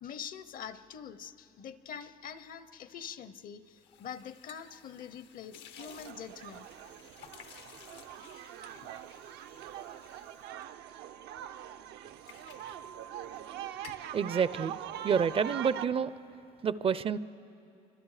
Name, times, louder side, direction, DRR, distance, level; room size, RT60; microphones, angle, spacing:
voice 1, 0.0-6.7, left 8 dB, 55° left, 0.7 m, -44 dB
sound 1, 3.7-11.4 11.8-13.5 13.7-14.2, left 8 dB, 85° left, 1.0 m, -55 dB
sound 2, 5.8-15.9, right 11 dB, 80° right, 0.6 m, -43 dB
voice 2, 14.1-14.8 15.0-16.1 16.6-17.2, right 7 dB, 35° right, 0.4 m, -28 dB
28.5 x 25.0 x 4.9 m
cardioid pair, 110°, 17 cm